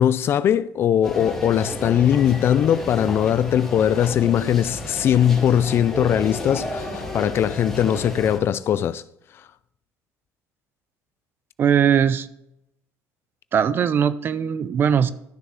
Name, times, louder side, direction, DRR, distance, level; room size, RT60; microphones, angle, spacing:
voice 1, 0.0-9.0, left 9 dB, 45° left, 0.4 m, -20 dB
sound 1, 1.0-8.4, left 1 dB, 5° left, 2.8 m, -32 dB
voice 2, 11.6-12.3 13.5-15.1, right 8 dB, 40° right, 0.5 m, -20 dB
12.5 x 6.6 x 3.7 m
cardioid pair, 115°, 6 cm